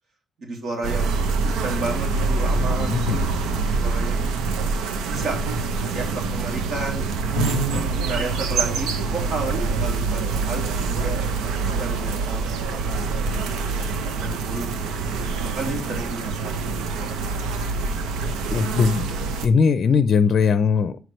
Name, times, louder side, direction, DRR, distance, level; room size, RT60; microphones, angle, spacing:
voice 1, 0.4-4.3 4.6-4.7 5.0-5.4 5.8-7.3 8.0-13.0 13.3-14.7 15.0-15.1 15.5-17.3, right 3 dB, 65° right, 0 dB, 2.8 m, -33 dB
sound 1, 0.8-19.5, right 4 dB, 90° right, 0.8 m, -25 dB
voice 2, 2.6-3.2 7.3-7.9 18.5-19.1 19.4-21.1, left 5 dB, 55° left, 12 dB, 0.5 m, -20 dB
9.2 x 4.7 x 3.2 m, 0.36 s
cardioid pair, 90°, 0 cm